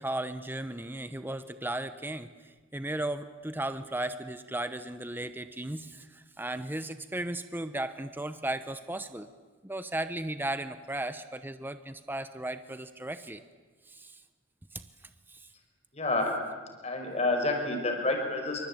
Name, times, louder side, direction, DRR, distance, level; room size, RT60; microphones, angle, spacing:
voice 1, 0.0-9.3 9.6-13.4 13.9-14.2 14.7-14.8 15.3-15.5, right 1 dB, 10° right, 10 dB, 0.9 m, -36 dB
voice 2, 15.9-16.5 16.8-18.7, left 2 dB, 35° left, 4 dB, 5.8 m, -29 dB
27.0 x 24.5 x 8.9 m, 1.4 s
head